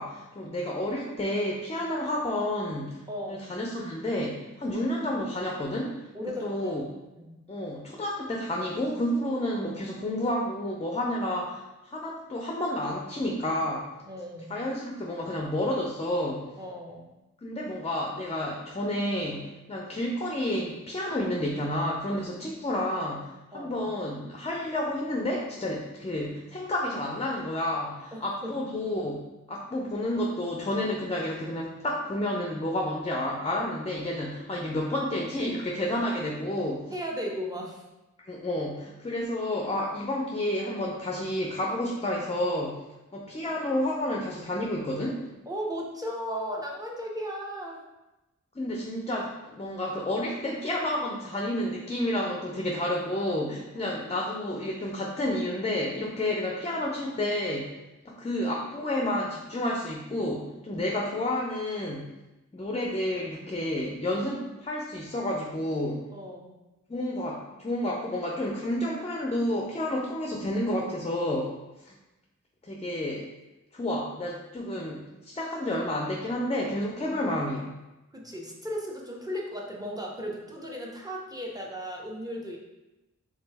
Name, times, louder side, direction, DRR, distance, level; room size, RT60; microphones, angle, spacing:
voice 1, 0.0-6.8 7.5-13.9 14.5-16.5 17.4-29.2 29.5-36.9 38.2-42.8 43.1-45.3 48.6-57.8 58.0-62.1 62.5-66.0 66.9-71.6 71.8-71.9 72.6-73.3 73.7-77.7, left 1 dB, 20° left, 0 dB, 0.5 m, -30 dB
voice 2, 3.1-3.5 6.1-7.4 14.1-14.5 16.6-17.1 23.5-23.8 28.1-28.6 36.9-37.8 45.5-47.8 53.7-54.0 60.7-60.8 66.1-66.6 78.1-82.6, equal, 10° right, -2 dB, 0.9 m, -36 dB
3.6 x 3.0 x 3.4 m, 1.0 s
wide cardioid pair, 55°, 31 cm